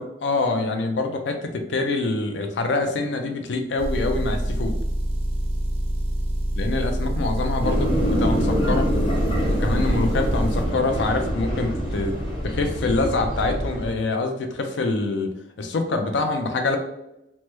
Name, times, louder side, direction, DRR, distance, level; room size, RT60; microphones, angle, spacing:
voice 1, 0.0-4.7 6.6-8.9 9.4-12.1 12.4-15.3 15.6-16.8, left 3 dB, 85° left, 5 dB, 0.5 m, -25 dB
Motor vehicle (road) / Engine, 3.8-10.7, equal, 35° right, 0.4 m, -26 dB
sound 1, 7.6-13.9, equal, 30° left, 0.8 m, -25 dB
3.3 x 2.1 x 3.0 m, 0.89 s
head